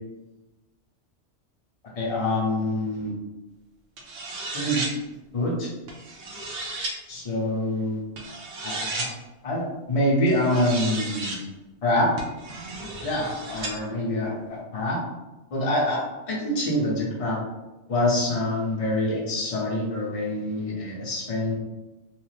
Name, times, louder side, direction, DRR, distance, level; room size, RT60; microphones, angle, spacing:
voice 1, 2.0-3.1 4.5-4.9 5.3-5.7 7.1-8.0 8.6-9.1 9.4-11.4 11.8-12.1 13.0-15.0 15.5-16.0 16.3-17.4 17.9-21.5, left 1 dB, 35° left, -5 dB, 0.8 m, -25 dB
sound 1, 4.0-4.9 5.9-6.9 8.2-9.1 10.3-11.4 12.2-13.7, right 2 dB, 90° right, 1.0 m, -34 dB
3.1 x 2.0 x 3.2 m, 1.1 s
omnidirectional pair, 1.2 m